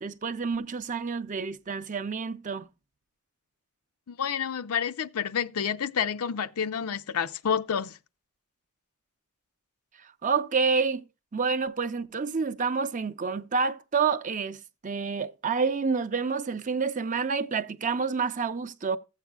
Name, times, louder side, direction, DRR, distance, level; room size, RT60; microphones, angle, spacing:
voice 1, 0.0-2.7 10.0-11.0 11.3-19.0, right 5 dB, 35° right, 0.5 m, -28 dB
voice 2, 4.1-8.0, left 7 dB, 85° left, 0.5 m, -29 dB
15.0 x 8.2 x 2.3 m
head